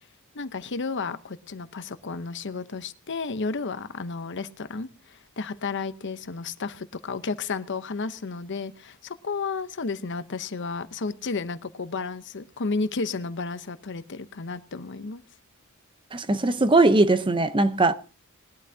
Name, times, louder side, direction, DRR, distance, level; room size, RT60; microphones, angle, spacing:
voice 1, 0.3-15.2, left 4 dB, 55° left, 0.8 m, -32 dB
voice 2, 16.1-17.9, right 2 dB, 25° right, 0.7 m, -20 dB
20.5 x 12.0 x 2.7 m
head